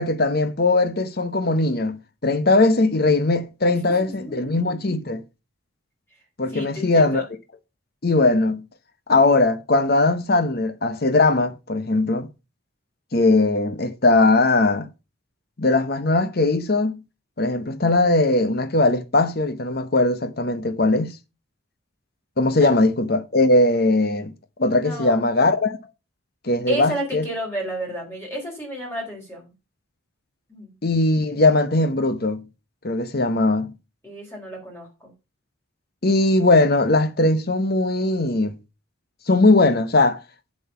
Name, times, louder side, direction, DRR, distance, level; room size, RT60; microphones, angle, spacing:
voice 1, 0.0-5.2 6.4-7.3 8.0-8.7 9.1-12.3 13.1-14.9 15.6-17.0 17.4-21.2 22.4-24.3 24.6-25.8 26.4-27.3 30.8-32.4 32.8-33.7 36.0-38.6 39.3-40.2, left 2 dB, 50° left, 0.9 m, -19 dB
voice 2, 3.6-4.7 6.5-7.2 22.6-22.7 24.8-25.2 26.7-29.5 30.5-30.7 34.0-35.1, right 1 dB, 10° left, 4.3 m, -32 dB
7.7 x 7.5 x 5.7 m
head